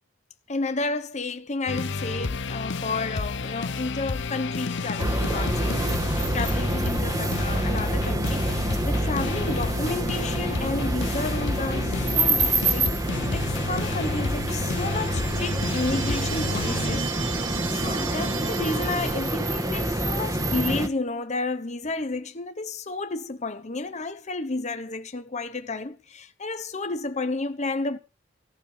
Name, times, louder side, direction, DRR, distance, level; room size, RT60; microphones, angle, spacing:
voice 1, 0.5-28.0, left 3 dB, 40° left, 1.1 m, -31 dB
sound 1, 1.7-17.0, left 3 dB, 65° left, 0.8 m, -31 dB
sound 2, 5.0-20.9, right 1 dB, 20° right, 1.3 m, -27 dB
sound 3, 14.4-19.8, right 6 dB, 90° right, 1.6 m, -36 dB
15.0 x 6.8 x 8.4 m
head